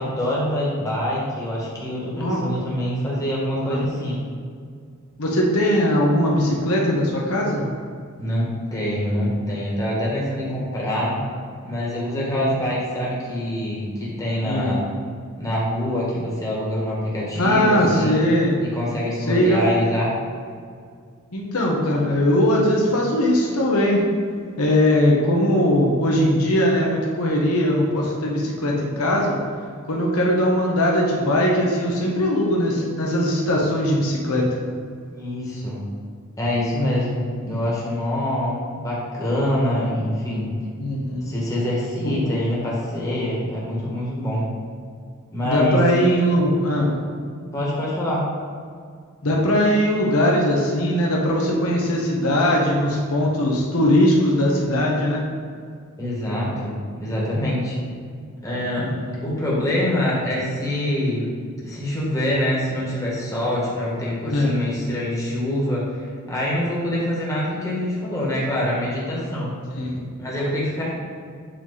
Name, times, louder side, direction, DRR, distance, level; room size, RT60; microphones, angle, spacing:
voice 1, 0.0-4.2 8.2-11.2 11.6-14.8 15.4-18.2 18.7-20.2 35.1-35.8 36.4-40.5 41.2-44.4 45.3-46.0 47.5-48.3 56.0-57.8 58.4-58.9 59.2-61.3 61.6-69.5 70.2-70.9, left 1 dB, 15° left, -6 dB, 1.5 m, -25 dB
voice 2, 5.2-7.7 12.1-12.6 14.4-14.8 17.3-18.6 19.3-19.6 21.3-24.0 24.6-29.4 29.9-34.4 40.8-41.3 42.0-42.2 45.4-46.9 49.2-55.2 58.8-59.2 64.2-64.5 69.8-70.0, left 1 dB, 80° left, -2 dB, 1.0 m, -20 dB
8.0 x 3.2 x 4.0 m, 2.1 s
head